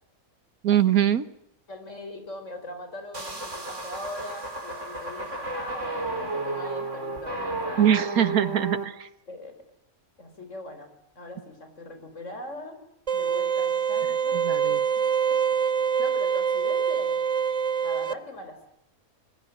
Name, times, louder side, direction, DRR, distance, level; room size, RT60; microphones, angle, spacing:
voice 1, 0.6-1.2 7.8-9.1 14.3-14.8, right 10 dB, 85° right, 13 dB, 1.8 m, -22 dB
voice 2, 1.7-8.0 9.3-9.6 10.2-12.8 13.1-14.4 14.9-15.0 16.0-17.1 17.8-18.7, left 1 dB, 55° left, 7 dB, 5.4 m, -41 dB
sound 1, 3.1-8.8, right 2 dB, 55° right, 3.9 m, -32 dB
sound 2, 13.1-18.1, right 7 dB, 25° right, 1.2 m, -25 dB
26.5 x 24.0 x 7.5 m, 0.74 s
omnidirectional pair, 1.5 m